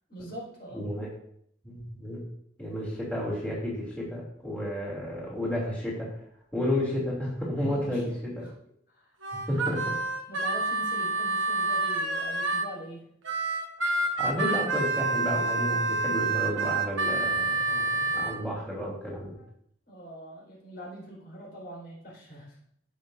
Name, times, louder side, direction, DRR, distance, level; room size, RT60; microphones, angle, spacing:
voice 1, 0.1-0.8 7.6-8.0 8.4-8.5 8.9-9.5 10.3-13.0 19.4-19.5 19.9-22.5, equal, 50° left, -4 dB, 4.7 m, -43 dB
voice 2, 0.7-1.1 1.6-2.2 2.6-6.1 6.5-8.5 9.3-9.9 14.2-19.4, left 1 dB, 10° left, -7 dB, 3.0 m, -32 dB
Harmonica, 9.2-12.7 13.2-18.4, right 3 dB, 70° right, 1.3 m, -28 dB
17.0 x 6.6 x 2.7 m, 0.70 s
head